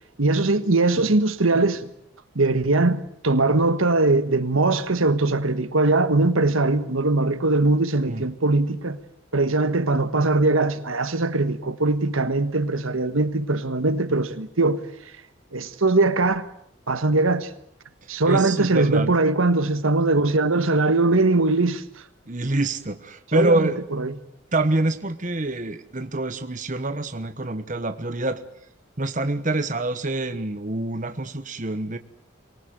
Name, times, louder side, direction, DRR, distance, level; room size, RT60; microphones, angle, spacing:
voice 1, 0.2-1.9 2.3-9.0 9.3-14.8 15.5-16.5 16.9-17.5 18.1-21.8 23.3-24.1, right 2 dB, 90° right, 1.5 m, -21 dB
voice 2, 18.1-19.1 22.3-23.8 24.5-28.4 29.0-32.0, right 2 dB, 40° right, 1.2 m, -26 dB
24.0 x 18.5 x 9.3 m
head